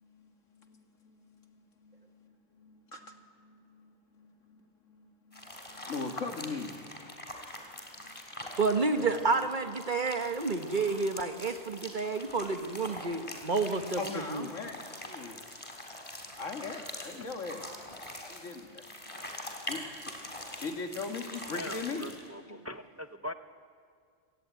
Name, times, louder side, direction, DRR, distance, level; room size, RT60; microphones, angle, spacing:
voice 1, 0.0-6.9 7.2-7.3 8.0-8.1 8.4-8.6 8.9-9.1 14.0-15.4 16.4-17.6 18.2-19.1 19.5-20.3 20.6-22.1 22.5-22.6, left 4 dB, 75° left, 4 dB, 2.3 m, -41 dB
sound 1, 5.3-22.3, left 1 dB, 25° left, 3.6 m, -44 dB
voice 2, 8.6-14.5, right 4 dB, 40° right, 7 dB, 1.2 m, -30 dB
voice 3, 21.5-23.3, left 1 dB, 20° right, 9 dB, 0.4 m, -42 dB
28.5 x 17.5 x 9.2 m, 2.2 s
omnidirectional pair, 1.3 m